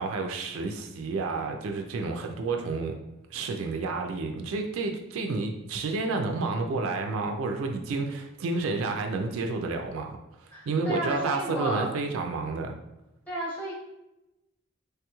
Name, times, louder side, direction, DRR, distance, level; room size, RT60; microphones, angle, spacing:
voice 1, 0.0-2.9 3.3-10.2 10.7-12.8, right 3 dB, 70° right, 4 dB, 0.3 m, -30 dB
voice 2, 10.5-11.9 13.3-13.7, right 1 dB, 10° left, -7 dB, 1.0 m, -32 dB
3.3 x 2.9 x 2.3 m, 0.94 s
head